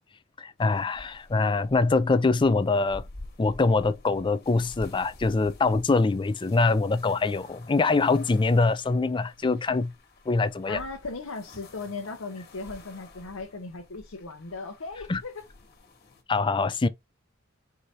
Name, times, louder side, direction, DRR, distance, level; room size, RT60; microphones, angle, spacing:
voice 1, 0.4-3.0 3.4-9.9 10.3-10.8 15.1-15.2 16.3-16.9, left 3 dB, 25° left, 0.4 m, -24 dB
sound 1, 0.6-16.2, left 2 dB, 50° left, 1.6 m, -49 dB
voice 2, 10.6-15.5, left 3 dB, 90° left, 0.8 m, -37 dB
4.8 x 2.7 x 4.1 m
head